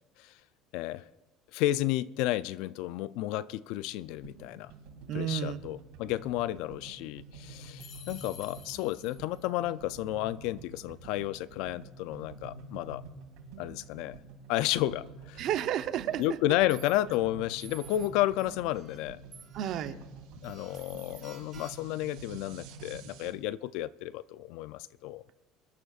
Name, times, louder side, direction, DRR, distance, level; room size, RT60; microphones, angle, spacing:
voice 1, 0.7-1.1 1.5-4.7 5.1-13.0 13.6-14.2 14.5-15.5 16.2-19.2 20.4-25.3, left 15 dB, 70° left, 17 dB, 0.4 m, -32 dB
sound 1, 4.0-23.3, right 4 dB, 85° right, 2.4 m, -49 dB
voice 2, 5.1-5.6 15.4-16.4 19.5-20.0, right 11 dB, 50° right, 10 dB, 0.7 m, -31 dB
sound 2, 7.8-9.5, left 8 dB, 50° left, 1.5 m, -50 dB
sound 3, 16.1-16.2 16.7-17.2 17.6-18.1 18.4-19.0 19.3-19.9 20.4-22.0, right 6 dB, 30° right, 4.4 m, -52 dB
24.0 x 11.5 x 2.4 m, 1.1 s
cardioid pair, 145°, 0 cm